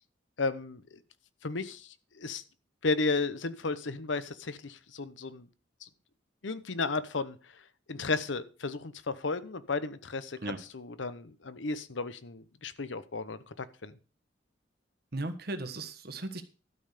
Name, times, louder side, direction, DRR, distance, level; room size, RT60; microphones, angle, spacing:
voice 1, 0.4-1.0 1.4-2.4 2.8-5.5 5.8-5.9 6.4-7.6 7.9-14.0, left 3 dB, 75° left, 14 dB, 0.9 m, -34 dB
voice 2, 15.1-16.4, right 2 dB, 55° right, 9 dB, 1.4 m, -36 dB
12.5 x 5.7 x 6.6 m, 0.36 s
head